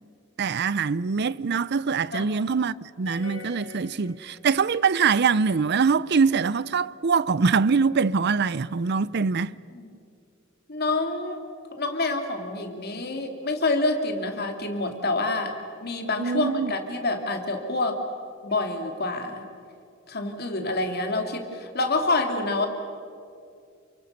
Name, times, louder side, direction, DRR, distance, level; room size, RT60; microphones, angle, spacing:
voice 1, 0.4-9.6 16.2-16.7, right 5 dB, 55° right, 0.5 m, -23 dB
sound 1, 3.1-4.8, left 3 dB, 75° left, 3.8 m, -42 dB
voice 2, 10.7-11.4 11.8-15.5 15.8-18.0 18.4-19.4 20.1-22.7, left 2 dB, 50° left, 2.8 m, -27 dB
28.5 x 23.5 x 6.8 m
head